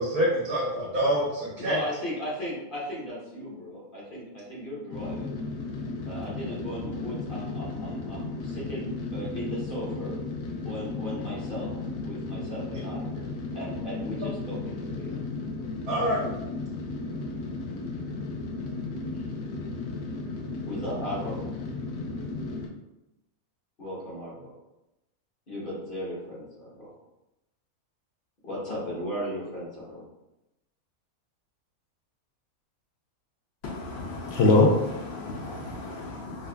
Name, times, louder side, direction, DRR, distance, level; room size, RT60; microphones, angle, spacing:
voice 1, 0.0-1.8 15.9-16.3, equal, 75° right, -7 dB, 1.6 m, -26 dB
voice 2, 1.6-5.4 6.0-10.2 10.6-11.7 12.0-13.1 13.5-15.2 19.1-19.3 20.7-21.4 23.8-24.5 25.5-26.9 28.4-30.0, equal, 40° left, -5 dB, 1.0 m, -36 dB
sound 1, 4.9-22.7, left 3 dB, 85° left, 1.1 m, -34 dB
voice 3, 33.6-36.5, left 2 dB, 60° left, -1 dB, 0.7 m, -25 dB
4.9 x 2.3 x 2.2 m, 0.93 s
omnidirectional pair, 1.6 m